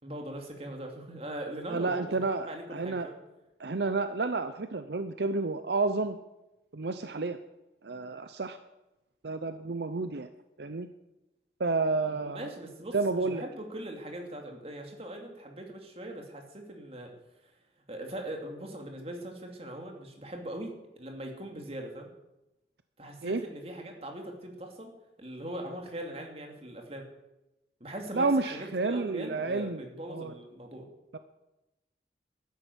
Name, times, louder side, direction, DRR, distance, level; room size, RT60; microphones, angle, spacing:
voice 1, 0.0-3.2 12.1-17.1 17.9-22.1 23.0-24.9 25.2-27.1 27.8-30.9, right 1 dB, 35° right, 2 dB, 2.6 m, -41 dB
voice 2, 1.7-3.1 3.6-6.2 6.7-7.4 7.8-8.6 9.2-10.3 10.6-10.9 11.6-12.5 12.9-13.4 23.2-23.4 28.1-29.8 30.1-30.3 31.1-31.2, right 3 dB, 70° right, 10 dB, 0.7 m, -30 dB
12.5 x 10.5 x 8.0 m, 0.96 s
head